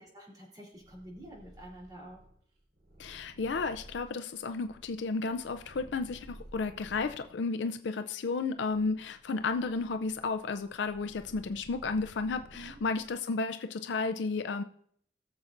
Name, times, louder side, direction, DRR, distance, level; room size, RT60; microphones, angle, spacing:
voice 1, 0.0-2.2 12.5-12.8, right 1 dB, 25° right, 3.5 m, -49 dB
Purr, 0.7-7.3 7.9-13.2, right 1 dB, 80° right, 4.6 m, -54 dB
voice 2, 3.0-14.6, left 4 dB, 85° left, 0.5 m, -33 dB
19.5 x 7.1 x 2.6 m
head